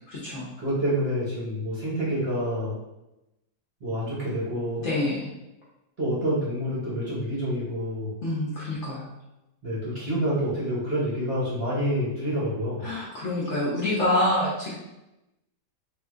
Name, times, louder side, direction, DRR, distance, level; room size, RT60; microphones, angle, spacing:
voice 1, 0.1-0.5 4.8-5.3 8.2-9.1 12.8-14.7, left 1 dB, 55° left, -6 dB, 0.9 m, -26 dB
voice 2, 0.6-2.8 3.8-4.9 6.0-8.1 9.6-12.9, equal, 45° right, -8 dB, 0.9 m, -28 dB
3.6 x 2.7 x 2.4 m, 0.94 s
omnidirectional pair, 1.8 m